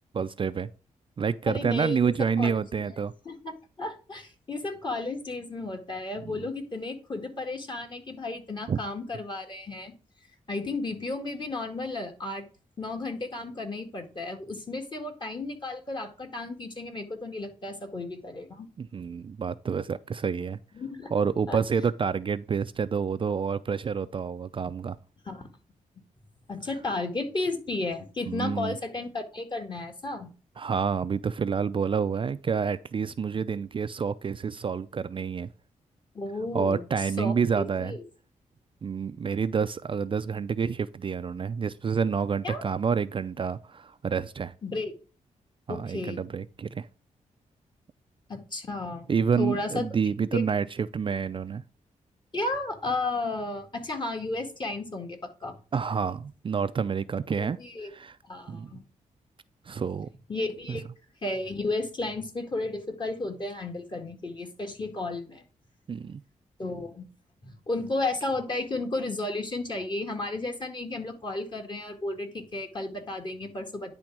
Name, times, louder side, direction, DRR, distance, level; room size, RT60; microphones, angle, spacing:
voice 1, 0.1-0.7 1.2-3.1 6.3-6.4 8.7-8.8 18.8-20.6 21.1-25.0 28.3-28.8 30.6-35.5 36.5-38.0 38.8-44.5 45.7-46.9 49.1-51.6 55.7-57.6 57.8-58.2 58.5-58.7 59.7-60.1 60.7-60.8 65.9-66.2, right 6 dB, 40° right, 0.4 m, -28 dB
voice 2, 1.5-2.9 3.3-9.9 10.5-12.4 12.8-18.7 20.7-21.1 21.5-21.6 25.3-25.5 26.5-30.3 36.1-38.0 42.4-42.6 44.6-44.9 45.7-46.2 48.3-49.9 50.3-50.4 52.3-55.6 57.4-57.9 58.2-58.8 60.3-60.9 61.2-65.4 66.6-67.1 67.4-73.9, left 2 dB, 35° left, 1.9 m, -33 dB
10.0 x 3.5 x 6.0 m
cardioid pair, 95°, 14 cm